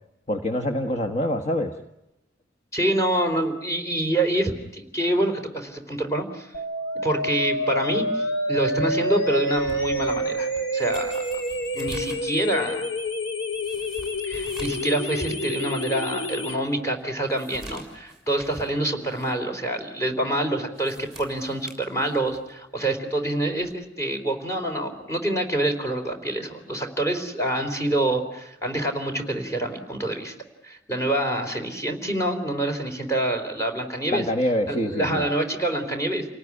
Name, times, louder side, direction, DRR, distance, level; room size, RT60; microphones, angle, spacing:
voice 1, 0.3-1.7 34.1-35.2, left 1 dB, 35° left, 4 dB, 1.4 m, -25 dB
voice 2, 2.7-6.5 7.0-11.4 11.7-12.9 14.3-30.3 30.6-34.2 34.7-36.3, right 1 dB, 15° left, 4 dB, 3.9 m, -26 dB
sound 1, 6.5-16.5, equal, 80° left, 2.9 m, -28 dB
sound 2, 9.5-14.9 15.3-15.4 16.0-16.1 16.5-18.7 19.1-19.3 20.6-22.5 23.6-23.8, right 1 dB, ahead, 6.6 m, -45 dB
29.5 x 19.0 x 9.9 m, 0.89 s
head